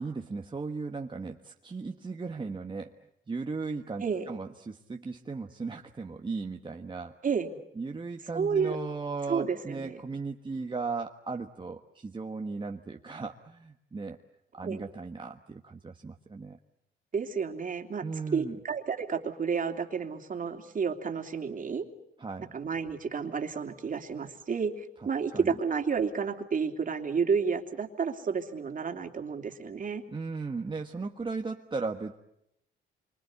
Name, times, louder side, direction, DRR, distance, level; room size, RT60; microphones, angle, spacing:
voice 1, 0.0-2.9 3.3-7.2 7.8-14.2 14.5-16.6 18.0-18.6 22.2-22.5 25.3-25.6 30.1-32.1, right 4 dB, 25° right, 3 dB, 1.4 m, -36 dB
voice 2, 4.0-4.3 7.2-7.5 8.3-8.8 9.3-10.0 14.6-14.9 17.1-18.0 18.3-21.9 22.5-30.0, right 6 dB, 40° right, 5 dB, 3.0 m, -31 dB
27.0 x 25.0 x 8.3 m, 0.82 s
cardioid pair, 90°, 20 cm